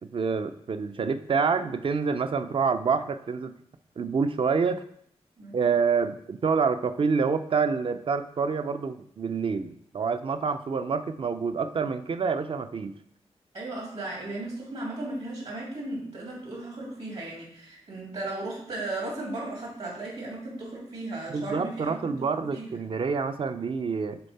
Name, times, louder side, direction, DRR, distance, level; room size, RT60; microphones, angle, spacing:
voice 1, 0.1-3.5 4.0-4.8 5.5-12.9 21.3-24.2, right 5 dB, 50° right, 10 dB, 0.5 m, -27 dB
voice 2, 13.5-22.8, right 2 dB, 70° right, -3 dB, 2.7 m, -36 dB
6.8 x 3.8 x 4.2 m, 0.66 s
wide cardioid pair, 90°, 11 cm